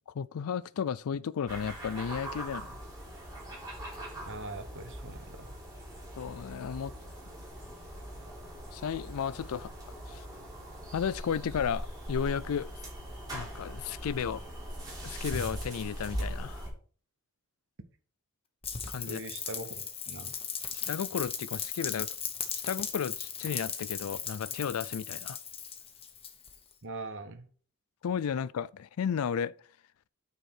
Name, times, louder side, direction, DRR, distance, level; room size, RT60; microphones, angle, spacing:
voice 1, 0.1-2.8 6.2-6.9 8.7-9.7 10.1-10.3 10.9-12.7 13.3-14.4 15.0-16.7 18.9-19.2 20.7-22.1 22.7-25.4 28.0-29.5, left 7 dB, 85° left, 0.4 m, -33 dB
sound 1, 1.5-16.7, equal, 20° right, 3.2 m, -41 dB
voice 2, 4.2-5.6 19.0-20.4 26.8-27.5, right 2 dB, 60° right, 1.1 m, -42 dB
Rain, 18.6-26.7, left 7 dB, 25° left, 1.1 m, -37 dB
9.0 x 4.6 x 4.9 m
head